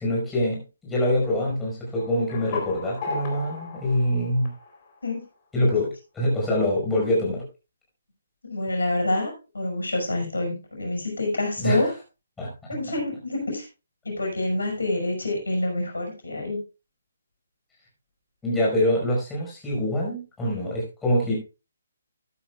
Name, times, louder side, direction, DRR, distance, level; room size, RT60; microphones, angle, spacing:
voice 1, 0.0-4.5 5.5-7.4 11.6-11.9 12.4-12.5 18.4-21.4, left 1 dB, 10° left, -4 dB, 5.1 m, -25 dB
sound 1, 1.9-5.3, left 3 dB, 35° left, 3.5 m, -36 dB
voice 2, 8.4-11.9 12.7-13.7 14.0-16.6, left 2 dB, 80° left, 1 dB, 5.9 m, -27 dB
14.0 x 10.5 x 2.3 m, 0.30 s
figure-of-eight pair, 140°, 0 cm